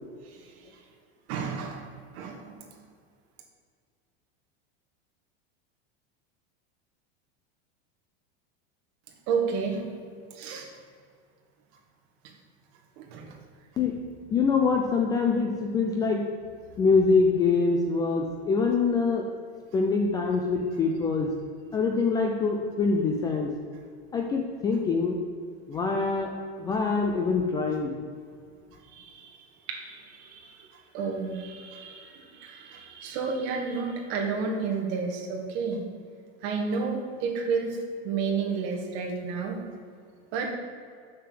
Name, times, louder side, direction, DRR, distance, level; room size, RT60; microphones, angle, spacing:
voice 1, 1.3-1.9 2.1-2.6 9.3-9.9 10.3-10.7 13.0-13.4 28.9-29.4 29.7-30.7 30.9-35.8 36.4-37.8 38.0-39.6 40.3-40.6, right 5 dB, 45° right, 2 dB, 1.8 m, -31 dB
voice 2, 14.3-16.2 16.8-19.3 19.7-21.3 21.7-23.5 24.1-25.2 25.7-26.3 26.6-27.9, left 4 dB, 10° left, 1 dB, 0.3 m, -24 dB
6.8 x 6.8 x 7.6 m, 2.1 s
supercardioid pair, 165°, 33 cm